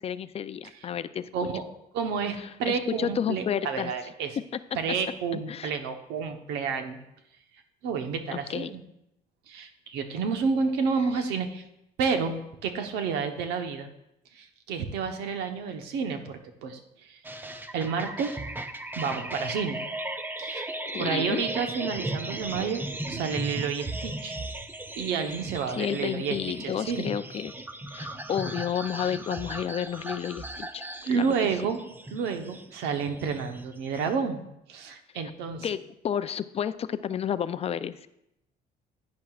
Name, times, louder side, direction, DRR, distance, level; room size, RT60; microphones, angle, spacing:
voice 1, 0.0-1.3 2.7-3.9 5.5-5.7 8.3-8.7 20.9-21.4 25.7-27.5 27.9-30.9 31.1-31.3 35.6-35.8 36.0-38.1, left 8 dB, 35° left, 13 dB, 0.4 m, -31 dB
voice 2, 1.3-1.6 1.9-4.4 4.7-7.0 7.8-8.8 9.5-11.6 12.0-13.9 14.3-17.2 17.7-18.4 19.0-19.8 20.4-20.7 20.9-24.4 25.0-27.1 31.1-31.8 32.1-35.7, right 5 dB, 90° right, 6 dB, 1.0 m, -30 dB
sound 1, 17.2-34.2, right 1 dB, 10° right, 0.6 m, -37 dB
10.5 x 9.5 x 2.4 m, 0.82 s
cardioid pair, 110°, 17 cm